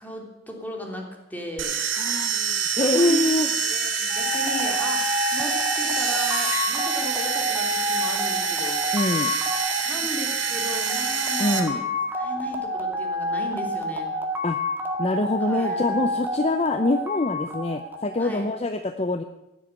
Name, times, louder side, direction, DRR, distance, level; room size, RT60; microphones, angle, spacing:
voice 1, 0.0-1.8 2.8-8.8 9.8-11.8 12.1-14.1 15.4-16.1 18.2-18.5, left 1 dB, 10° left, 1 dB, 3.2 m, -36 dB
sound 1, 1.6-11.6, right 6 dB, 90° right, 2.9 m, -26 dB
voice 2, 2.0-3.5 8.9-9.3 11.4-11.8 14.4-14.6 15.0-19.2, left 2 dB, 35° left, 9 dB, 0.7 m, -24 dB
sound 2, 4.1-18.6, left 1 dB, 10° right, 1.8 m, -29 dB
16.0 x 9.9 x 8.9 m, 1.0 s
head